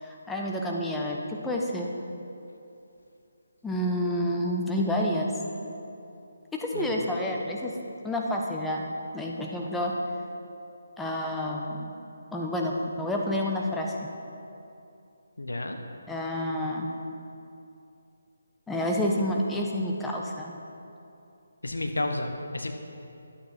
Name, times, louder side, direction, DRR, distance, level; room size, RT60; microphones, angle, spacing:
voice 1, 0.0-1.9 3.6-5.3 6.6-7.7 8.0-8.8 9.1-9.9 11.0-11.9 12.3-14.1 16.1-16.9 18.7-20.5, left 1 dB, 5° left, -1 dB, 0.9 m, -29 dB
voice 2, 6.7-7.1 15.4-15.8 21.6-22.7, left 2 dB, 80° left, 5 dB, 1.1 m, -32 dB
11.5 x 8.6 x 4.4 m, 2.7 s
figure-of-eight pair, 150°, 0 cm